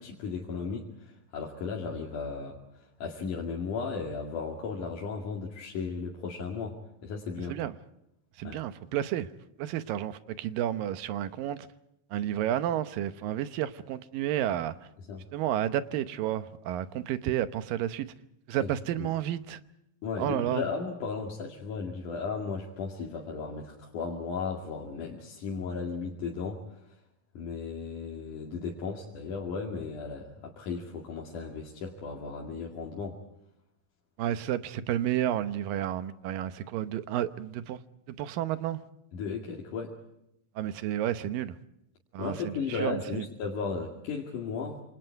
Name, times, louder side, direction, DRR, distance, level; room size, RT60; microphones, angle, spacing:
voice 1, 0.0-7.6 8.4-8.6 15.1-15.3 18.6-19.1 20.0-26.6 27.4-33.2 39.1-40.0 42.2-44.8, left 5 dB, 65° left, 3.8 m, -35 dB
voice 2, 8.4-9.3 9.6-11.7 12.1-14.8 15.3-18.1 18.5-19.6 20.2-20.6 34.2-37.8 38.1-38.8 40.6-41.5 42.1-43.2, right 11 dB, 85° right, 2.7 m, -31 dB
28.0 x 27.0 x 4.6 m
omnidirectional pair, 3.9 m